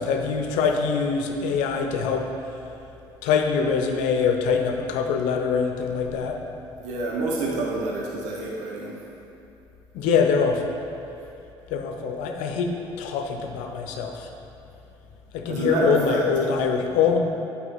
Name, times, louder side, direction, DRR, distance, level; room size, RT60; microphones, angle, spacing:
voice 1, 0.0-2.3 3.2-6.4 9.9-10.7 11.7-14.3 15.3-17.2, left 6 dB, 75° left, 4 dB, 0.7 m, -24 dB
voice 2, 6.8-9.0 15.5-16.2, right 2 dB, 75° right, -2 dB, 0.9 m, -27 dB
8.2 x 4.9 x 4.0 m, 2.7 s
hypercardioid pair, 60°, 13 cm